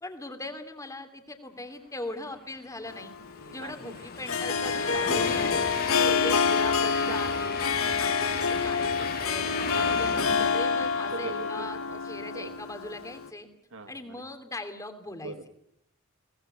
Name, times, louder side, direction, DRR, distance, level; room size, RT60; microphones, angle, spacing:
voice 1, 0.0-3.1 3.5-5.7 6.1-7.6 8.0-13.5 13.9-15.3, left 2 dB, 15° left, 7 dB, 2.9 m, -40 dB
Train, 2.5-11.9, left 4 dB, 45° left, 2.8 m, -36 dB
Harp, 2.9-13.3, left 5 dB, 65° left, 1.7 m, -27 dB
voice 2, 3.4-4.1 5.1-5.4 5.8-6.6 7.8-8.2 9.8-10.5 11.1-12.5 13.7-14.2 15.1-15.5, right 3 dB, 60° right, 9 dB, 2.2 m, -41 dB
23.0 x 19.0 x 9.1 m, 0.71 s
head